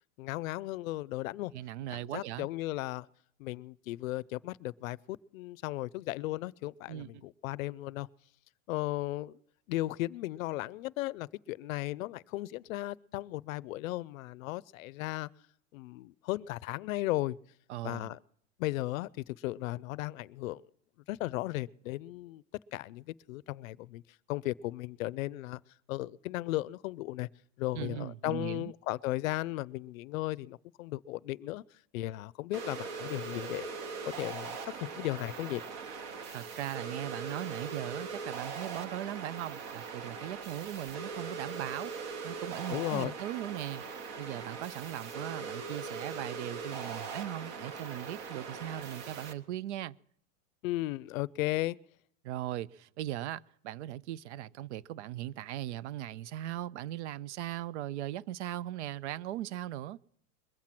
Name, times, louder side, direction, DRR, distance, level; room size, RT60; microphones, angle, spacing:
voice 1, 0.2-1.5 1.9-3.1 3.4-8.1 8.7-9.3 9.7-15.3 15.7-17.4 17.8-18.2 18.6-20.6 21.1-22.4 22.7-24.0 24.3-25.6 25.9-27.3 27.6-31.6 31.9-33.7 34.2-35.6 42.7-43.1 50.6-51.8, left 17 dB, 85° left, 0.5 m, -36 dB
voice 2, 1.5-2.5 6.9-7.1 17.7-18.1 27.7-28.7 36.3-41.9 42.2-43.8 44.2-50.0 52.2-60.0, right 13 dB, 60° right, 0.5 m, -39 dB
sound 1, 32.5-49.3, right 5 dB, 35° right, 0.8 m, -41 dB
21.5 x 7.5 x 5.8 m
supercardioid pair, 175°, 39 cm